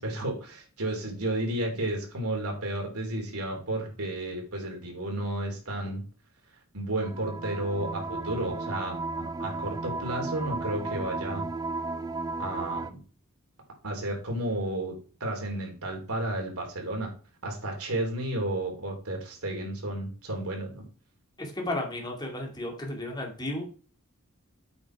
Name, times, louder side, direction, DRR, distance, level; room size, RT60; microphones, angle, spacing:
voice 1, 0.0-6.0 6.7-11.4 12.4-13.0 13.8-17.1 17.4-20.8, right 1 dB, 75° right, 1 dB, 3.4 m, -32 dB
sound 1, 7.0-12.9, right 3 dB, 15° right, 0.4 m, -34 dB
voice 2, 21.4-23.6, left 1 dB, 20° left, 1 dB, 2.3 m, -33 dB
8.5 x 6.1 x 4.7 m, 0.37 s
head